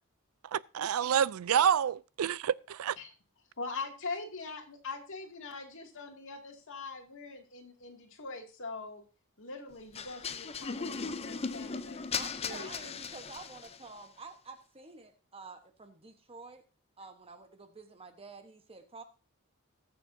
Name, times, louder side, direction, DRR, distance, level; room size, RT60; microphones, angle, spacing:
voice 1, 0.4-3.0, right 8 dB, 70° right, 0.4 m, -28 dB
voice 2, 3.6-9.0 9.4-12.0 12.4-13.0, left 3 dB, 60° left, 2.4 m, -42 dB
sound 1, 9.9-13.9, left 5 dB, 30° left, 0.6 m, -37 dB
voice 3, 12.1-16.6 17.0-19.0, right 3 dB, 25° right, 1.1 m, -49 dB
20.5 x 6.9 x 2.7 m
head